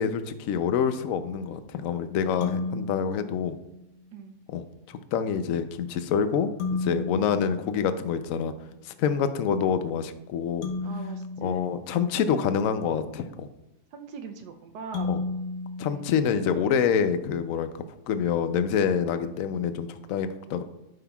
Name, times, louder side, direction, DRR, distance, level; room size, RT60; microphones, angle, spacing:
voice 1, 0.0-3.6 4.5-8.5 8.8-10.7 11.4-13.5 15.1-15.2 15.8-17.7 18.1-20.6, left 7 dB, 65° left, 10 dB, 0.9 m, -27 dB
sound 1, 2.4-4.1 6.6-8.6 10.6-12.8 14.9-17.0, left 3 dB, 85° left, 1.7 m, -35 dB
voice 2, 10.8-11.7 13.9-15.1 15.8-16.1 19.2-19.4, right 6 dB, 85° right, 5 dB, 1.2 m, -42 dB
12.5 x 5.6 x 2.3 m, 0.91 s
omnidirectional pair, 1.7 m